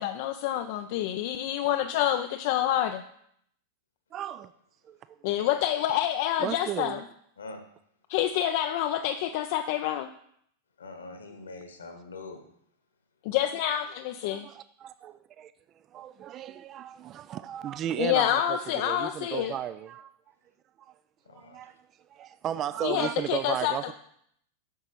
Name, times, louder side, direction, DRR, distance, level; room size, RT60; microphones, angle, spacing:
voice 1, 0.0-3.0 5.2-7.0 8.1-10.1 13.2-14.5 18.0-19.5 22.8-23.9, left 12 dB, 50° left, 7 dB, 0.4 m, -27 dB
voice 2, 4.1-4.5 4.8-5.5 6.4-7.0 14.2-20.1 20.8-20.9 21.3-21.8 22.1-23.9, right 11 dB, 30° right, 14 dB, 0.3 m, -35 dB
voice 3, 10.8-12.4 21.2-21.7, left 3 dB, 70° left, 6 dB, 1.4 m, -43 dB
9.1 x 6.6 x 4.5 m, 0.70 s
figure-of-eight pair, 90°, 0 cm